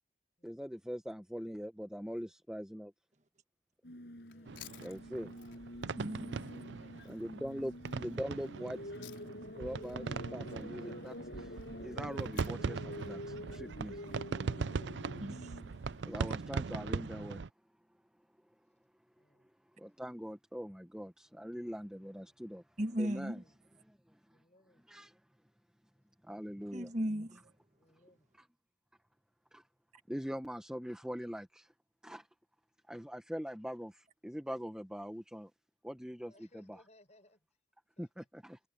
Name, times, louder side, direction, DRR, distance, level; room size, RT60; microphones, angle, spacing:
voice 1, 0.4-2.9 4.8-5.3 7.0-7.7 8.0-8.8 9.5-14.0 16.0-17.4 19.8-22.6 23.0-23.4 23.8-24.4 24.7-25.2 26.2-26.9 28.3-28.5 29.5-29.7 30.1-31.7 32.0-32.3 32.9-35.5 35.8-36.8 38.0-38.6, equal, 5° right, 1.2 m, -42 dB
sound 1, 3.8-16.5, left 1 dB, 70° left, 6.7 m, -47 dB
Chewing mastication, 4.2-9.5 9.8-14.2, left 12 dB, 90° left, 4.9 m, -59 dB
voice 2, 4.3-4.7 6.5-7.1 19.2-19.5 22.2-22.4 23.1-23.5 24.3-24.8 27.8-28.3 36.2-37.5 38.0-38.3, left 1 dB, 40° left, 7.2 m, -66 dB
sound 2, 4.5-17.5, right 4 dB, 85° right, 0.5 m, -40 dB
voice 3, 6.0-6.3 15.2-15.5 22.8-23.4 26.7-27.5, equal, 40° right, 1.5 m, -36 dB
head